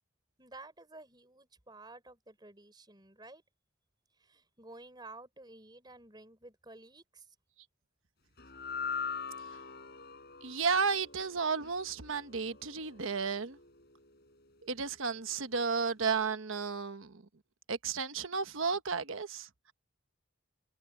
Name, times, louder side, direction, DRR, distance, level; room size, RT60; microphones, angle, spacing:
voice 1, 0.4-3.4 4.2-7.3, right 2 dB, 20° right, 4.6 m, -52 dB
sound 1, 8.4-14.8, left 6 dB, 50° left, 4.1 m, -43 dB
voice 2, 10.4-13.6 14.6-17.2 17.7-19.7, right 5 dB, 75° right, 1.2 m, -33 dB
head